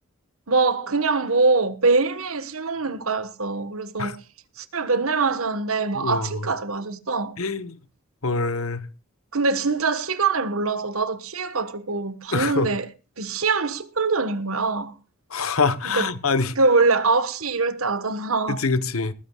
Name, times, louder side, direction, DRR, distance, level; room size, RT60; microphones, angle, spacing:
voice 1, 0.5-4.2 4.6-7.4 9.3-12.9 13.2-15.0 15.9-16.1 16.6-18.6, right 4 dB, 85° right, 1.4 m, -23 dB
voice 2, 5.9-6.4 7.4-7.7 8.2-8.8 12.3-12.7 15.3-16.5 18.5-19.1, left 4 dB, 80° left, 1.1 m, -24 dB
20.0 x 15.0 x 2.4 m
head